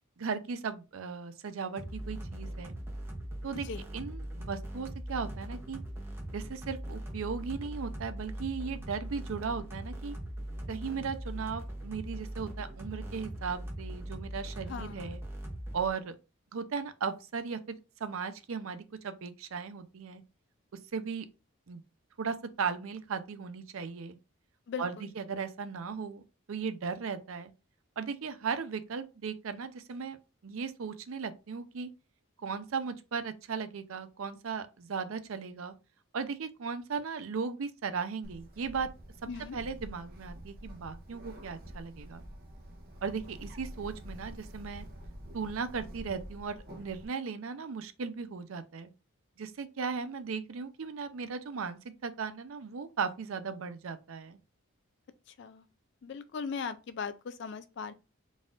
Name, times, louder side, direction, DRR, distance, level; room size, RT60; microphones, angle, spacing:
voice 1, 0.2-2.7 3.4-3.7 3.9-5.8 6.3-10.1 10.7-15.2 15.7-16.1 16.5-20.2 20.9-21.3 21.7-21.8 22.2-24.2 24.8-27.5 28.0-30.2 30.4-31.9 32.4-35.7 36.1-38.9 39.5-42.2 43.0-44.9 45.3-48.9 49.4-54.4, right 5 dB, 75° right, 0.5 m, -37 dB
sound 1, 1.8-15.9, right 1 dB, 10° right, 0.7 m, -40 dB
voice 2, 14.7-15.1 24.7-25.1 39.3-39.6 55.3-55.7 56.0-57.9, left 5 dB, 55° left, 0.3 m, -39 dB
Bird, 38.2-47.0, equal, 45° right, 0.8 m, -47 dB
4.0 x 2.4 x 3.6 m
head